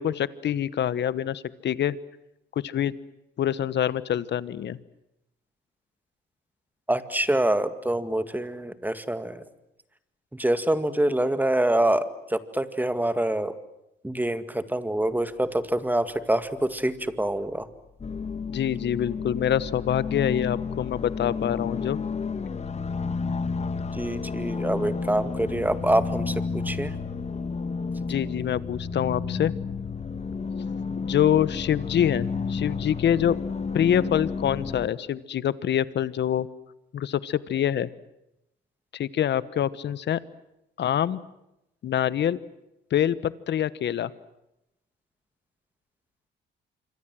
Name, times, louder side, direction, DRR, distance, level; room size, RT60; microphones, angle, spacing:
voice 1, 0.0-2.0 2.6-3.0 3.4-4.8 18.5-22.0 28.0-29.5 31.0-33.4 33.7-36.5 36.9-37.9 38.9-40.2 40.8-41.2 41.8-42.4 42.9-44.1, left 10 dB, 60° left, 17 dB, 1.2 m, -25 dB
voice 2, 6.9-9.4 10.3-13.6 14.0-17.7 23.9-26.9, right 1 dB, 10° right, 11 dB, 2.0 m, -26 dB
sound 1, 18.0-34.9, left 5 dB, 35° left, 1.3 m, -31 dB
27.0 x 25.0 x 7.7 m, 0.88 s
cardioid pair, 90°, 20 cm